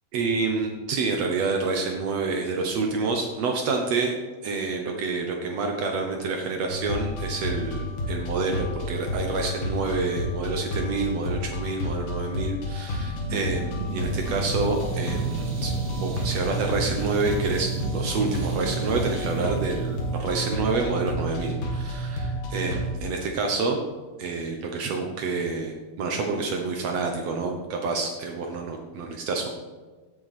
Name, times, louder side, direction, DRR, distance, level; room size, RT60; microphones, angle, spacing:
voice 1, 0.1-4.1 4.4-15.7 16.0-23.8 24.2-29.5, right 4 dB, 90° right, 2 dB, 1.4 m, -28 dB
sound 1, 6.7-23.0, equal, 70° left, 4.2 m, -30 dB
sound 2, 12.9-20.9, right 3 dB, 45° right, 3.3 m, -34 dB
17.0 x 7.8 x 4.3 m, 1.3 s
omnidirectional pair, 4.7 m